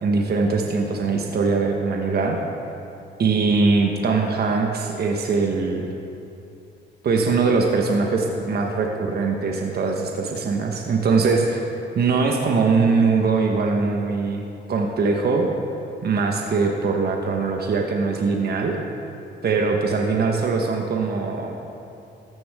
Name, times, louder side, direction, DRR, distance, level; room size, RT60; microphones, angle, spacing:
voice 1, 0.0-2.4 3.2-5.9 7.0-11.6 11.9-15.5 16.0-18.8 19.4-21.5, right 4 dB, 55° right, 1 dB, 1.3 m, -21 dB
14.0 x 12.0 x 3.7 m, 2.7 s
cardioid pair, 90°, 20 cm